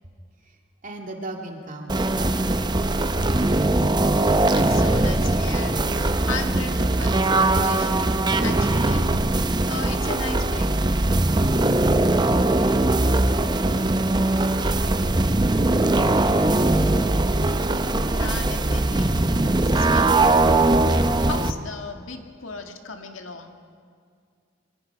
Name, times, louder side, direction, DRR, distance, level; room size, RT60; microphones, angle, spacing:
voice 1, 0.8-3.6, right 2 dB, 40° right, 2 dB, 2.4 m, -41 dB
sound 1, 1.9-21.5, right 2 dB, 20° right, 0.6 m, -21 dB
voice 2, 3.9-9.1 9.6-10.7 18.0-23.6, left 4 dB, 85° left, 5 dB, 1.8 m, -37 dB
25.5 x 23.5 x 4.8 m, 2.2 s
head